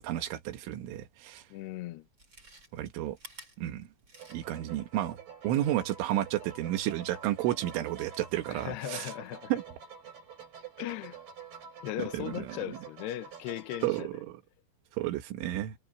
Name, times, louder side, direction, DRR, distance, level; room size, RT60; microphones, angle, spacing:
voice 1, 0.0-1.4 2.7-3.2 3.6-3.9 4.3-5.2 5.4-9.1 9.5-9.6 12.1-12.6 13.8-14.4 15.0-15.8, right 13 dB, 90° right, 4.0 m, -32 dB
voice 2, 1.5-2.1 8.5-9.5 10.8-11.2 11.8-14.2, left 14 dB, 70° left, 2.9 m, -38 dB
Chewing mastication, 2.0-4.7 5.1-5.2, right 2 dB, 25° right, 8.5 m, -52 dB
sound 1, 4.1-14.0, right 7 dB, 55° right, 9.0 m, -47 dB
omnidirectional pair, 5.4 m